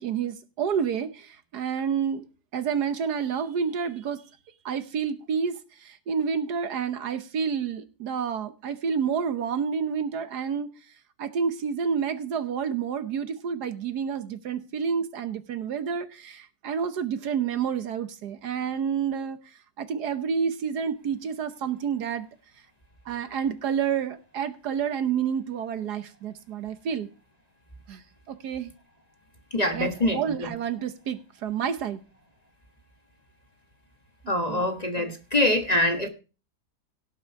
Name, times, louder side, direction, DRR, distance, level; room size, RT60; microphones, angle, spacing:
voice 1, 0.0-2.3 2.5-4.2 4.6-10.7 11.2-19.4 19.8-22.3 23.0-27.1 27.9-28.0 28.3-28.7 29.7-32.0 34.2-34.6, right 7 dB, 70° right, 1.5 m, -29 dB
voice 2, 29.5-30.2 34.3-36.1, left 1 dB, 25° left, 1.3 m, -24 dB
17.5 x 6.3 x 4.6 m
omnidirectional pair, 1.8 m